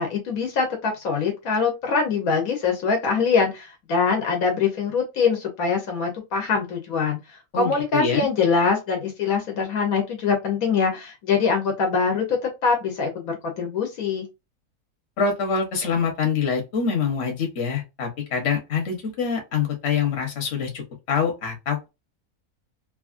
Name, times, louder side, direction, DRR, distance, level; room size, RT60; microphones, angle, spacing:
voice 1, 0.0-14.3, left 5 dB, 75° left, 2 dB, 1.2 m, -23 dB
voice 2, 7.5-8.3 15.2-21.9, left 6 dB, 50° left, 2 dB, 1.2 m, -25 dB
3.0 x 2.4 x 2.4 m, 0.24 s
omnidirectional pair, 1.5 m